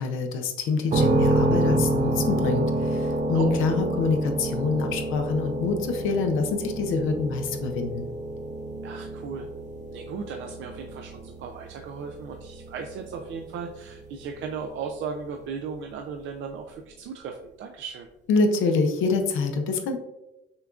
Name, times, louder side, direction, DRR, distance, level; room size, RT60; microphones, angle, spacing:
voice 1, 0.0-8.1 18.3-20.0, left 4 dB, 85° left, 5 dB, 0.6 m, -26 dB
sound 1, 0.9-14.6, right 1 dB, 35° right, 0.7 m, -28 dB
voice 2, 8.8-9.5 9.9-18.1, right 6 dB, 75° right, 3 dB, 0.5 m, -36 dB
6.7 x 2.3 x 2.4 m, 0.95 s
cardioid pair, 90°, 20 cm